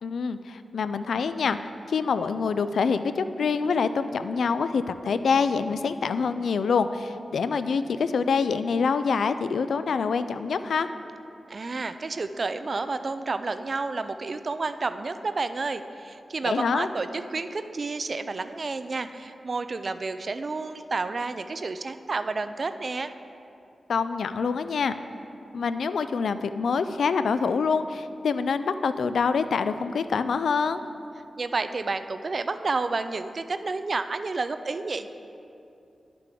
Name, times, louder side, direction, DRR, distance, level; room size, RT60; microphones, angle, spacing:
voice 1, 0.0-1.6 1.9-10.9 16.4-16.9 23.9-24.9 25.5-30.8, left 5 dB, 85° left, 11 dB, 0.3 m, -26 dB
voice 2, 11.5-23.1 31.4-35.1, right 3 dB, 50° right, 10 dB, 0.4 m, -30 dB
10.5 x 6.7 x 3.7 m, 2.7 s
wide cardioid pair, 80°, 0 cm